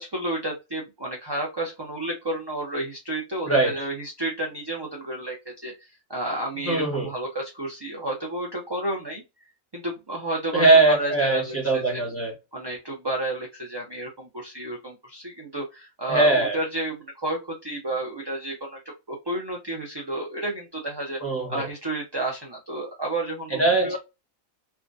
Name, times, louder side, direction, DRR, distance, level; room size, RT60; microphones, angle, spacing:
voice 1, 0.0-9.2 9.7-12.0 12.5-18.8 19.1-21.2 21.5-24.0, right 1 dB, 30° right, 0.5 m, -31 dB
voice 2, 3.5-3.8 6.6-7.1 10.5-12.3 16.1-16.6 21.2-21.7 23.5-24.0, right 2 dB, 10° left, 1.4 m, -21 dB
3.4 x 2.3 x 2.6 m
omnidirectional pair, 1.4 m